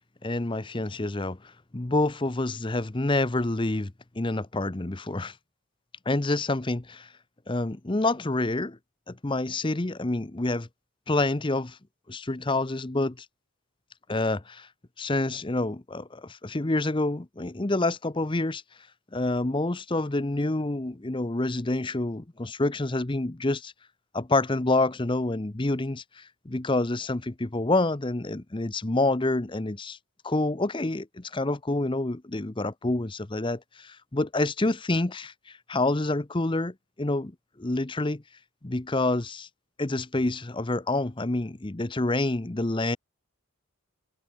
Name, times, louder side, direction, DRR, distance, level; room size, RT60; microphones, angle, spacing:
voice 1, 0.2-1.4 1.7-5.3 6.1-7.1 7.5-8.8 9.1-10.7 11.1-11.8 12.1-13.3 14.1-14.7 15.0-18.6 19.1-23.7 24.1-30.0 30.2-37.3 37.6-38.2 38.6-39.5 39.8-43.0, left 2 dB, 20° left, 0.7 m, -27 dB
head